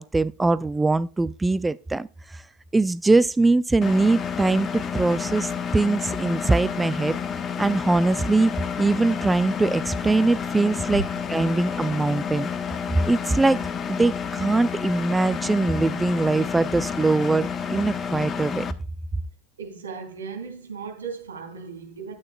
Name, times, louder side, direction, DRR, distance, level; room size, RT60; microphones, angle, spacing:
voice 1, 0.0-2.4 2.7-7.2 7.6-8.5 8.8-11.0 11.3-12.5 13.1-13.6 13.9-18.7, right 3 dB, 10° right, 0.3 m, -22 dB
Engine, 3.8-18.7, left 7 dB, 30° left, 0.9 m, -30 dB
voice 2, 19.6-22.2, right 5 dB, 75° right, 3.3 m, -36 dB
12.5 x 8.8 x 2.3 m
figure-of-eight pair, 80°, 0 cm